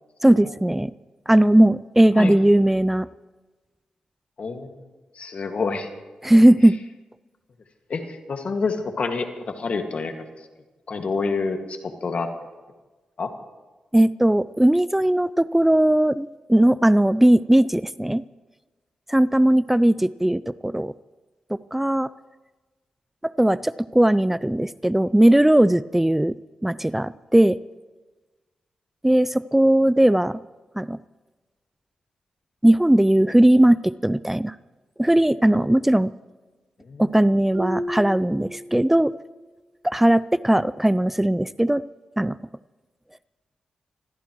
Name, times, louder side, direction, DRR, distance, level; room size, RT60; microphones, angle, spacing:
voice 1, 0.2-0.9 1.3-3.1 6.2-6.8 13.9-18.2 19.1-20.9 21.7-22.1 23.2-26.4 26.6-27.6 29.0-30.4 30.8-31.0 32.6-34.5 35.0-36.1 37.0-39.1 39.8-41.8 42.2-42.4, right 1 dB, 10° right, 17 dB, 0.4 m, -18 dB
voice 2, 4.4-4.8 5.2-5.9 7.9-10.1 10.9-12.3 13.2-13.3 36.9-37.1, left 4 dB, 60° left, 5 dB, 1.9 m, -27 dB
Marimba xylophone, 37.5-39.3, right 1 dB, 70° right, 5.0 m, -32 dB
25.5 x 16.0 x 3.1 m, 1.3 s
cardioid pair, 55°, 2 cm